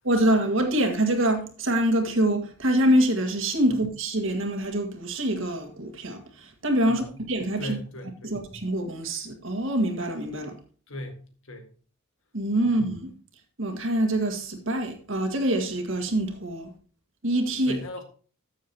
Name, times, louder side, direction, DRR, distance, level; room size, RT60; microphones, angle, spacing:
voice 1, 0.0-7.7 8.2-10.6 12.3-13.1 13.6-16.7 17.2-17.8, right 1 dB, 65° right, 2.0 m, -25 dB
voice 2, 6.9-7.2 7.6-8.4 10.9-11.2 11.4-11.7 12.6-12.8 17.6-18.0, left 1 dB, 70° left, 2.0 m, -38 dB
13.5 x 7.3 x 2.9 m
head